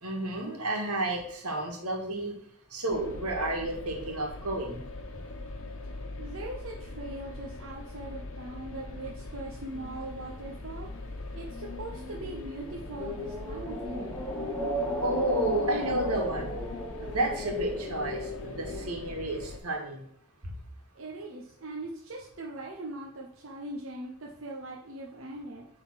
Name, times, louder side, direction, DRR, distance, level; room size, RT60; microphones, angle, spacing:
voice 1, 0.0-2.3 2.7-4.8 15.0-16.5 17.0-20.0, right 2 dB, 85° right, 2 dB, 2.0 m, -31 dB
sound 1, 2.9-19.6, left 2 dB, 65° left, 1.0 m, -42 dB
voice 2, 6.2-11.1 11.3-14.2 21.0-25.7, right 2 dB, 60° right, -2 dB, 0.9 m, -41 dB
sound 2, 9.6-18.9, left 1 dB, 5° left, 1.2 m, -36 dB
9.0 x 3.9 x 5.8 m, 0.68 s
head